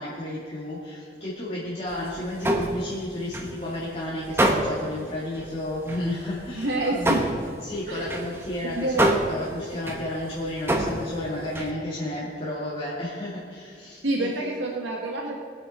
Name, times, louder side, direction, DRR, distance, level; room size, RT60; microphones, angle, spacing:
voice 1, 0.0-7.2 7.6-14.5, left 1 dB, 30° left, -8 dB, 2.3 m, -32 dB
sound 1, 1.9-3.8 4.2-5.0 5.3-5.5 5.9-11.7, right 1 dB, 15° right, 1.0 m, -26 dB
voice 2, 6.5-7.3 7.9-8.2 8.6-9.1 14.0-15.4, right 2 dB, 80° right, -1 dB, 1.5 m, -28 dB
23.0 x 8.3 x 4.3 m, 2.1 s
head